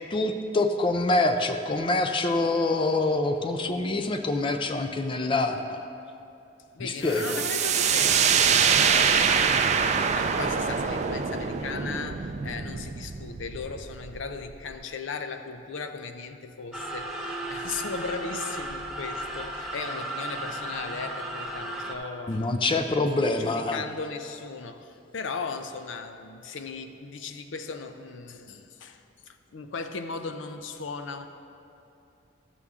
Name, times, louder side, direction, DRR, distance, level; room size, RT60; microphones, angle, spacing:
voice 1, 0.1-5.8 6.8-7.4 22.3-23.8, left 2 dB, 25° left, 6 dB, 0.4 m, -26 dB
voice 2, 6.7-31.3, left 4 dB, 85° left, 8 dB, 0.5 m, -37 dB
sound 1, 7.1-14.7, right 6 dB, 35° right, 0.4 m, -24 dB
sound 2, 16.7-21.9, right 1 dB, 5° right, 0.8 m, -35 dB
14.0 x 6.9 x 3.6 m, 2.7 s
head